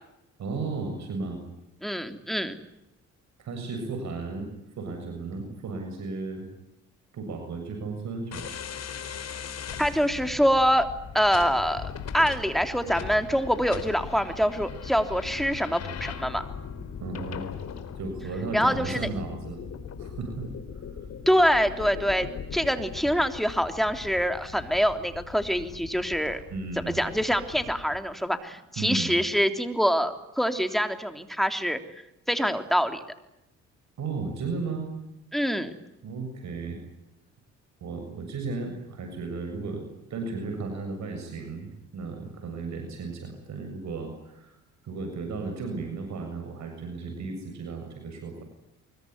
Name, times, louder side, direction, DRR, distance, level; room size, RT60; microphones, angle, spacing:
voice 1, 0.4-1.4 3.4-4.5 4.8-6.5 7.1-8.5 17.0-17.5 17.9-19.6 20.0-20.5 26.5-27.0 28.8-29.2 34.0-34.9 36.0-36.8 37.8-44.6 44.8-48.4, right 4 dB, 65° right, 5 dB, 7.3 m, -34 dB
voice 2, 1.8-2.6 9.8-10.9 11.1-16.5 18.5-19.1 21.2-26.4 26.9-31.8 32.3-33.0 35.3-35.7, equal, ahead, 7 dB, 3.4 m, -25 dB
sound 1, 8.3-28.0, left 7 dB, 60° left, 4.2 m, -39 dB
24.5 x 22.5 x 9.6 m, 0.88 s
cardioid pair, 90°, 30 cm